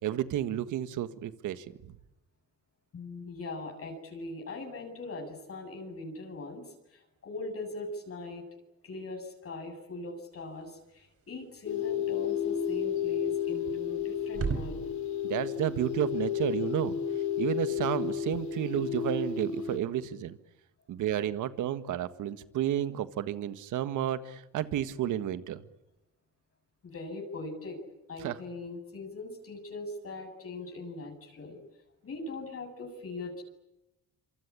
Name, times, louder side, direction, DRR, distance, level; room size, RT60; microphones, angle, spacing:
voice 1, 0.0-1.6 15.2-17.0 17.4-20.4 20.9-25.6 28.2-28.4, right 11 dB, 80° right, 12 dB, 1.7 m, -31 dB
voice 2, 2.9-8.4 8.8-14.8 17.3-17.4 26.8-27.8 28.1-31.6 32.0-33.4, left 2 dB, 50° left, 2 dB, 7.9 m, -41 dB
sound 1, 10.3-19.2, right 5 dB, 50° right, 4.6 m, -43 dB
sound 2, 11.6-19.8, left 9 dB, 70° left, 3.7 m, -32 dB
27.0 x 25.0 x 8.7 m, 0.93 s
cardioid pair, 90°, 30 cm